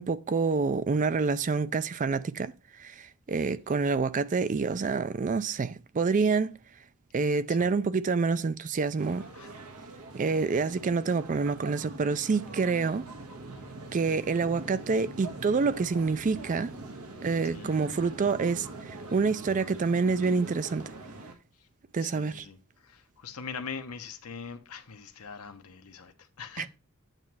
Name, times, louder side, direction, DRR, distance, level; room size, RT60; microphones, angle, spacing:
voice 1, 0.0-2.5 2.8-6.6 7.1-9.2 10.1-13.1 13.9-16.7 17.2-20.9 21.9-22.5 26.6-26.7, right 4 dB, 35° right, 0.4 m, -27 dB
sound 1, 9.0-21.3, right 2 dB, 90° right, 1.4 m, -43 dB
voice 2, 17.5-17.8 21.6-21.7 22.0-26.7, left 5 dB, 85° left, 1.0 m, -42 dB
9.0 x 3.1 x 6.0 m
head